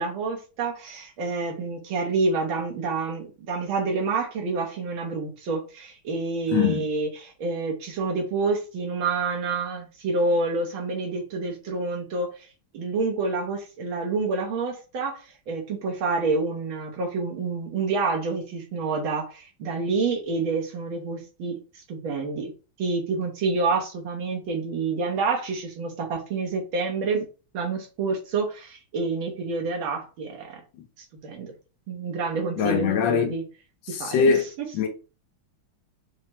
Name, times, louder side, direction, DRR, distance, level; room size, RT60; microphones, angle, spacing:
voice 1, 0.0-12.3 12.7-21.5 21.9-22.5 22.8-27.3 27.5-30.6 31.2-31.5 31.9-33.4 33.9-34.7, right 4 dB, 75° right, 1.8 m, -28 dB
voice 2, 6.5-6.9 32.6-33.3 33.9-34.5 34.7-34.9, left 6 dB, 75° left, 1.4 m, -22 dB
5.8 x 2.1 x 2.9 m
omnidirectional pair, 2.3 m